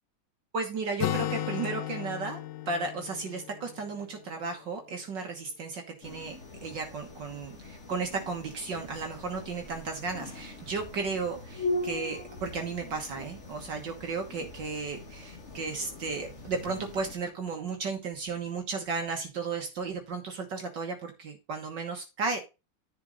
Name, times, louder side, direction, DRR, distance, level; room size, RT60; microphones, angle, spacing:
voice 1, 0.5-2.4 2.7-6.4 6.6-22.4, right 4 dB, 60° right, 3 dB, 1.9 m, -34 dB
Acoustic guitar, 1.0-4.7, left 13 dB, 70° left, 1.2 m, -35 dB
sound 1, 6.0-17.2, left 2 dB, 35° left, 1.6 m, -40 dB
10.5 x 5.2 x 3.9 m, 0.27 s
omnidirectional pair, 2.3 m